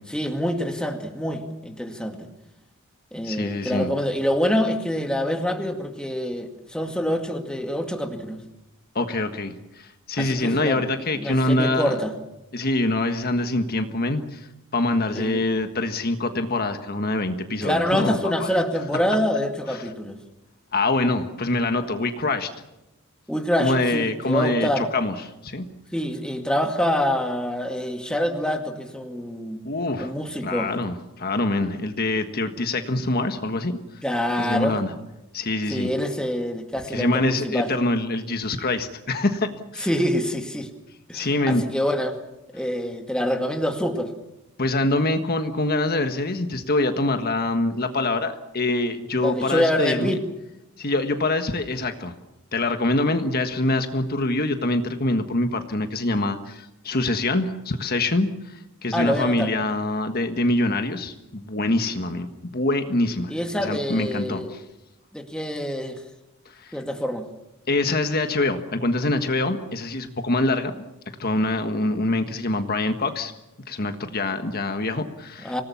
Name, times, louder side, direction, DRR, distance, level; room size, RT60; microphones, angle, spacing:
voice 1, 0.1-2.3 3.1-8.4 10.2-10.8 11.1-12.1 15.1-15.4 17.6-20.2 23.3-24.9 25.9-29.6 30.0-30.7 34.0-34.8 35.7-37.7 39.8-40.7 41.1-42.2 42.5-44.1 49.2-50.2 58.9-59.5 63.3-64.5 65.1-66.0 66.7-67.3 75.4-75.6, equal, 5° left, 4 dB, 2.1 m, -26 dB
voice 2, 3.2-3.9 8.9-11.9 12.5-14.5 14.7-18.5 19.7-19.9 20.7-22.5 23.6-25.1 25.4-25.6 29.6-30.1 30.4-33.7 34.4-34.9 35.3-35.9 36.9-39.9 41.1-41.6 44.6-50.2 50.8-52.1 52.5-63.3 63.6-64.6 66.4-66.7 67.7-70.7 71.2-73.3 73.7-75.6, left 2 dB, 45° left, 7 dB, 1.5 m, -25 dB
26.0 x 18.5 x 7.1 m, 0.94 s
head